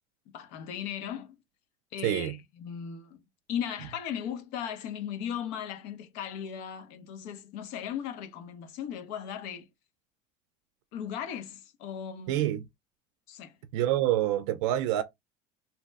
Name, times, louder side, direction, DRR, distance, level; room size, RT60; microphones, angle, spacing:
voice 1, 0.3-1.4 1.9-3.2 3.5-9.7 10.9-12.5 13.3-13.6, left 9 dB, 65° left, 0.8 m, -37 dB
voice 2, 2.0-2.4 12.3-12.7 13.7-15.0, right 13 dB, 85° right, 0.4 m, -27 dB
2.9 x 2.0 x 3.4 m
cardioid pair, 165°, 15 cm